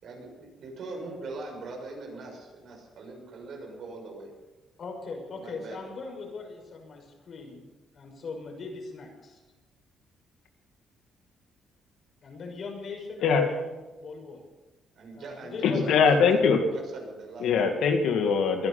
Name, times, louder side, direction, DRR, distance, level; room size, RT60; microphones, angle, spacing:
voice 1, 0.0-4.3 5.4-5.8 15.0-15.9 16.3-16.4 16.7-17.7, right 3 dB, 65° right, 1 dB, 6.6 m, -41 dB
voice 2, 4.8-7.7 7.9-9.4 12.2-14.4 15.1-16.8, left 4 dB, 55° left, 1 dB, 6.0 m, -40 dB
voice 3, 15.6-16.6 17.4-18.7, left 5 dB, 80° left, 5 dB, 2.2 m, -22 dB
22.0 x 11.5 x 5.6 m, 1.1 s
cardioid pair, 90°, 0 cm